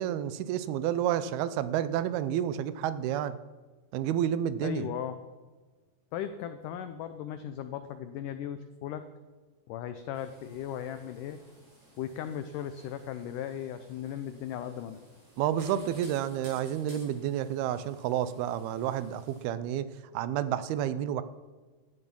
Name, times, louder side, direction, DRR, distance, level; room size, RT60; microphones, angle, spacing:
voice 1, 0.0-3.4 3.9-4.9 15.4-21.2, right 10 dB, 80° right, 14 dB, 2.5 m, -30 dB
voice 2, 4.6-5.2 6.1-9.0 9.7-11.4 12.0-15.0, left 9 dB, 85° left, 10 dB, 1.8 m, -37 dB
sound 1, 10.1-19.4, right 1 dB, 30° right, 7.3 m, -56 dB
16.5 x 12.5 x 5.4 m, 1.3 s
omnidirectional pair, 4.6 m